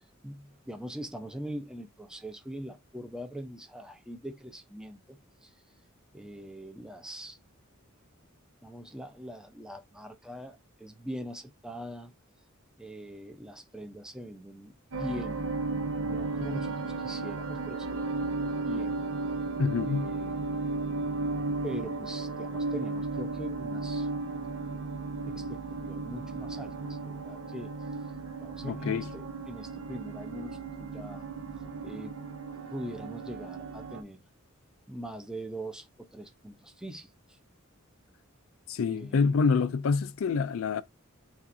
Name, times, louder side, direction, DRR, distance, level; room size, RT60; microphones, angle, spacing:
voice 1, 0.2-5.5 6.1-7.4 8.6-12.1 12.8-15.5 16.0-19.0 19.8-20.4 21.6-24.1 25.3-27.7 28.4-31.3 31.8-32.2 32.7-34.2 34.9-37.4 38.8-39.5, equal, 5° right, 0.6 m, -42 dB
sound 1, 14.9-34.0, right 3 dB, 75° right, 0.7 m, -35 dB
voice 2, 19.6-20.1 28.6-29.1 38.7-40.8, left 5 dB, 75° left, 0.4 m, -27 dB
7.1 x 2.5 x 2.6 m
head